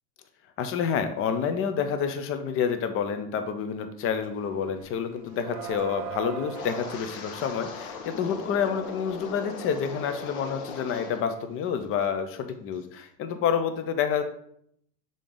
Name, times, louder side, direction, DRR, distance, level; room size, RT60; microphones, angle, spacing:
voice 1, 0.6-14.2, left 7 dB, 30° left, 8 dB, 0.6 m, -28 dB
sound 1, 4.1-4.3 4.6-9.3, right 7 dB, 30° right, 0.5 m, -40 dB
Wind, 6.5-11.4 11.6-12.1 12.5-12.8, left 5 dB, 55° left, 1.1 m, -39 dB
6.7 x 3.8 x 3.8 m, 0.71 s
supercardioid pair, 125°, 48 cm